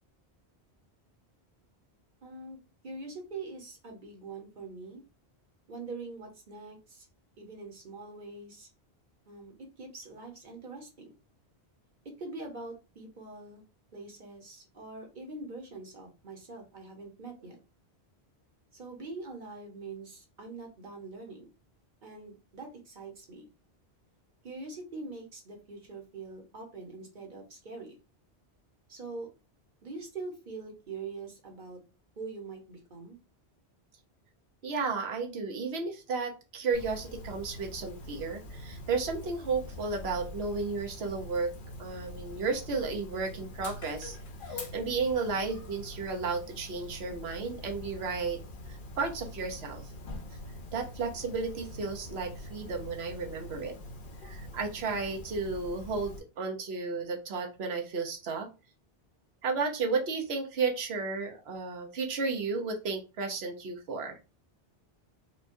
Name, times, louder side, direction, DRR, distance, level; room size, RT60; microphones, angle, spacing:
voice 1, 2.2-2.6 2.8-5.0 5.7-7.1 7.4-8.7 9.3-11.1 12.2-13.6 13.9-17.6 18.7-21.5 22.0-23.5 24.4-28.0 28.9-29.3 29.8-31.8 32.2-33.2, right 3 dB, 50° right, 2 dB, 1.1 m, -43 dB
voice 2, 34.6-41.5 41.8-44.2 44.4-48.4 49.0-49.9 50.7-53.8 54.2-58.5 59.4-64.2, right 4 dB, 75° right, 3 dB, 1.1 m, -33 dB
Dog, 36.7-56.2, left 1 dB, 55° left, 0.8 m, -44 dB
4.4 x 2.2 x 2.6 m, 0.30 s
omnidirectional pair, 1.1 m